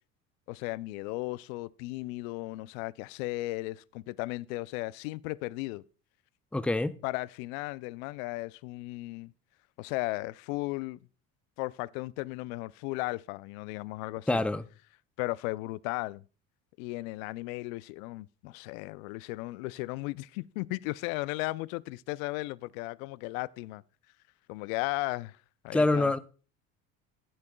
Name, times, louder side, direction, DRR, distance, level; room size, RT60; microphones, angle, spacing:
voice 1, 0.5-5.8 7.0-9.3 9.8-11.0 11.6-14.4 15.2-16.2 16.8-23.8 24.5-25.4 25.6-26.1, left 21 dB, 75° left, 0.5 m, -35 dB
voice 2, 6.5-7.0 14.3-14.6 25.7-26.2, left 2 dB, 5° left, 0.5 m, -26 dB
15.0 x 8.5 x 2.3 m
hypercardioid pair, 75°, 41 cm